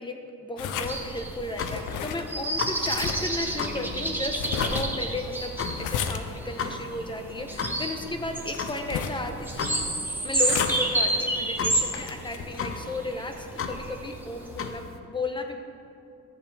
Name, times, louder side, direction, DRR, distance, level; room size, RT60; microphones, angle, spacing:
voice 1, 0.0-5.5 5.8-9.9 10.2-15.6, left 2 dB, 15° left, 5 dB, 1.0 m, -34 dB
sound 1, 0.6-12.8, left 7 dB, 90° left, 0.6 m, -36 dB
sound 2, 0.6-15.0, left 5 dB, 45° left, 0.7 m, -37 dB
sound 3, 0.7-14.7, right 1 dB, 5° right, 1.2 m, -31 dB
13.5 x 7.5 x 3.5 m, 2.5 s
cardioid pair, 90°, 30 cm